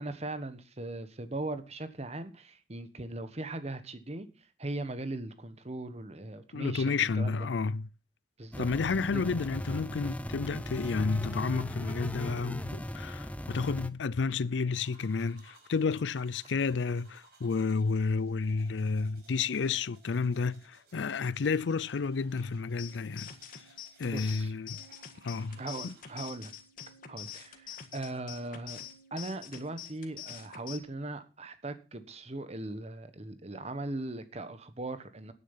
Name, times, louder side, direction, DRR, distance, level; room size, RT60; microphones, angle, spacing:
voice 1, 0.0-7.5 8.4-8.7 9.1-9.4 24.0-24.5 25.6-26.5 27.1-28.8 29.1-35.3, right 2 dB, 35° right, 1.3 m, -39 dB
voice 2, 6.5-7.9 8.6-23.3 24.0-24.8 25.2-25.9, left 4 dB, 85° left, 0.5 m, -31 dB
sound 1, 8.5-13.9, equal, 10° left, 0.7 m, -38 dB
sound 2, 14.6-26.6, right 3 dB, 60° right, 5.5 m, -62 dB
sound 3, 22.8-30.8, left 9 dB, 50° left, 1.8 m, -46 dB
10.0 x 9.7 x 5.6 m
head